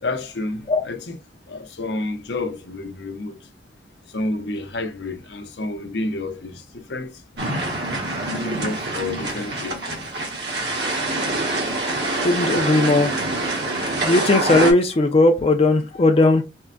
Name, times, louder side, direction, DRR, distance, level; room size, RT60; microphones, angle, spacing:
voice 1, 0.0-1.2 1.5-3.4 4.1-7.2 8.4-10.0, left 2 dB, 75° left, 0.7 m, -30 dB
sound 1, 7.4-14.7, right 2 dB, 70° right, 1.3 m, -25 dB
voice 2, 12.2-13.1 14.0-16.4, left 2 dB, 35° left, 0.4 m, -17 dB
4.4 x 2.1 x 2.4 m
head